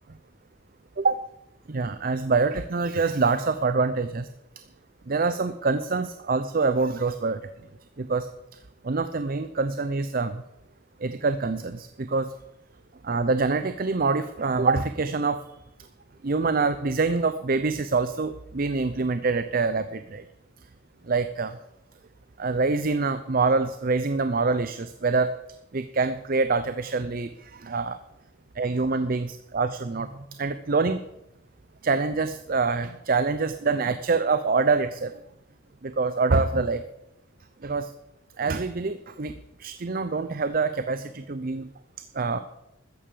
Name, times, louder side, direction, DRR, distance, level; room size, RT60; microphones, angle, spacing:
voice 1, 1.7-4.3 5.1-7.4 8.0-8.6 8.8-10.4 11.0-12.3 13.0-15.5 16.2-20.2 21.0-21.6 22.4-25.3 25.7-28.0 28.6-31.0 31.8-35.1 35.8-36.8 37.6-37.9 38.4-41.7 42.1-42.4, right 4 dB, 45° right, 11 dB, 0.6 m, -25 dB
13.5 x 9.1 x 6.8 m, 0.88 s
head